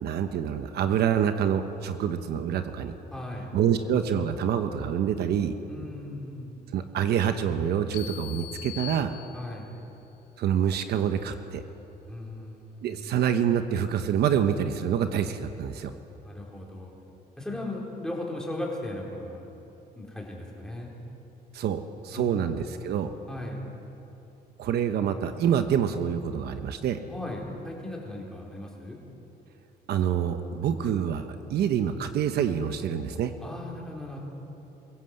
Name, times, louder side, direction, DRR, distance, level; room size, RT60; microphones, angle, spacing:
voice 1, 0.0-2.9 3.5-5.5 6.7-9.1 10.4-11.6 12.8-15.9 21.5-23.1 24.6-27.0 29.9-33.3, right 8 dB, 75° right, 8 dB, 1.1 m, -26 dB
voice 2, 3.1-3.5 5.7-6.6 9.3-9.7 12.1-13.1 16.2-16.9 17.4-19.5 20.0-20.9 22.1-22.5 23.3-23.6 27.1-29.0 33.4-34.2, left 1 dB, 5° left, -3 dB, 4.3 m, -37 dB
sound 1, 7.9-9.8, left 16 dB, 70° left, 2.5 m, -41 dB
23.5 x 16.0 x 7.8 m, 2.9 s
cardioid pair, 125°, 17 cm